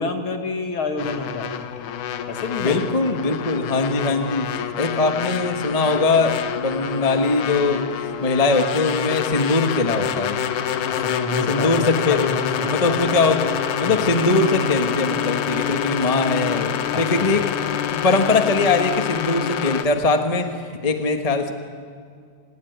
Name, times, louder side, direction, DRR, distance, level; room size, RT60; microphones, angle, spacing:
voice 1, 0.0-1.5 2.3-2.8 10.9-13.2 13.8-14.0 16.9-17.3, left 3 dB, 45° left, 5 dB, 2.5 m, -28 dB
sound 1, 1.0-19.9, left 9 dB, 80° left, 2.6 m, -27 dB
voice 2, 2.6-10.4 11.5-12.2 12.6-17.5 17.9-21.5, left 3 dB, 30° left, 5 dB, 0.6 m, -21 dB
28.0 x 19.5 x 9.5 m, 2.2 s
omnidirectional pair, 3.5 m